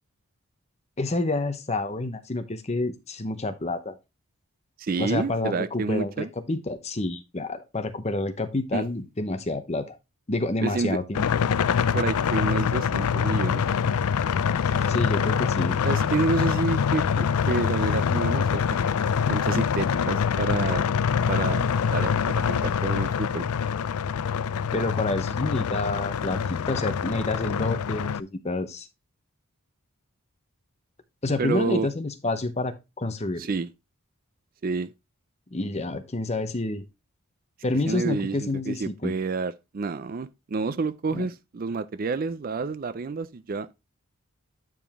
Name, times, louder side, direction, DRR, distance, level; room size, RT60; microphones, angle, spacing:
voice 1, 1.0-4.0 5.0-10.0 10.3-11.2 14.8-15.8 24.7-28.9 31.2-33.4 35.5-36.8 37.6-39.1 41.1-41.3, left 2 dB, 30° left, 0.8 m, -28 dB
voice 2, 4.8-6.3 8.7-8.8 10.6-11.0 11.9-13.6 15.8-18.8 19.3-20.8 21.3-21.6 21.9-23.5 31.4-31.9 33.4-33.7 34.6-34.9 37.9-43.7, right 4 dB, 40° right, 0.4 m, -29 dB
sound 1, 11.1-28.2, left 7 dB, 85° left, 0.4 m, -25 dB
8.9 x 5.1 x 3.5 m
head